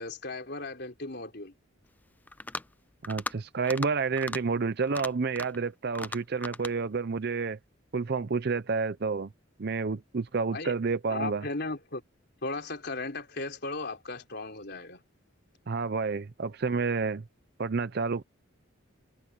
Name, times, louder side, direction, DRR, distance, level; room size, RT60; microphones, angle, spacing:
voice 1, 0.0-1.5 10.5-10.7 11.1-12.0 12.4-15.0, left 3 dB, 55° left, 4.1 m, -36 dB
sound 1, 2.3-2.7 3.0-3.4 3.6-3.9 4.2-4.4 4.8-5.6 6.0-6.7, left 2 dB, 10° left, 0.3 m, -37 dB
voice 2, 3.1-7.6 7.9-9.3 9.6-11.5 15.7-17.2 17.6-18.2, right 4 dB, 50° right, 0.6 m, -29 dB
head